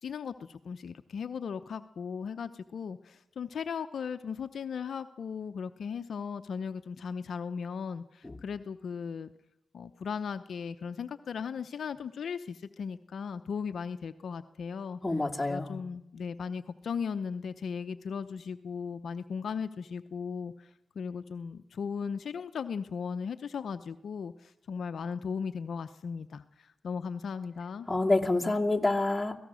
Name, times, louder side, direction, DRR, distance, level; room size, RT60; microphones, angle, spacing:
voice 1, 0.0-9.3 9.7-15.0 15.5-27.9, left 6 dB, 70° left, 9 dB, 0.7 m, -37 dB
voice 2, 15.0-15.8 27.9-29.4, left 2 dB, 15° left, -1 dB, 2.6 m, -27 dB
24.5 x 17.5 x 6.3 m, 0.86 s
supercardioid pair, 50°, 0 cm